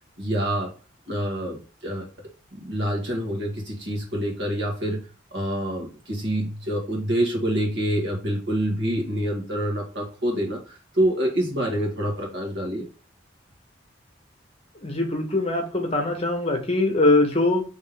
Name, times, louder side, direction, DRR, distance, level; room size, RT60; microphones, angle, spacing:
voice 1, 0.2-0.7 1.1-2.1 2.5-12.9, right 1 dB, 65° right, -1 dB, 1.5 m, -27 dB
voice 2, 14.8-17.6, left 2 dB, 30° left, 3 dB, 0.9 m, -22 dB
3.7 x 3.3 x 3.4 m, 0.36 s
head